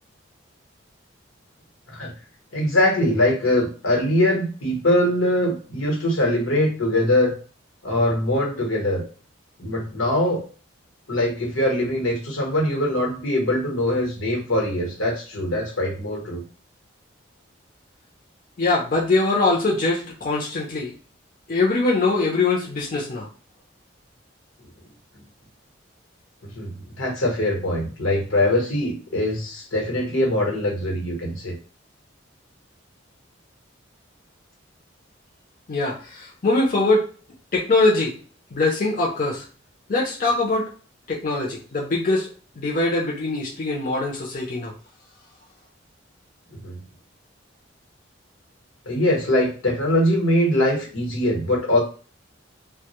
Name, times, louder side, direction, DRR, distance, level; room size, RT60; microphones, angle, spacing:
voice 1, 2.5-7.3 7.8-9.0 9.6-10.4 11.1-16.4 26.5-26.7 27.0-31.5 46.6-46.8 48.9-51.8, left 1 dB, 90° left, -1 dB, 1.0 m, -22 dB
voice 2, 18.6-20.9 21.5-23.3 35.7-37.1 37.5-38.1 38.5-39.4 39.9-40.7 41.1-44.7, left 2 dB, 40° left, -3 dB, 0.5 m, -22 dB
2.1 x 2.0 x 2.8 m, 0.39 s
head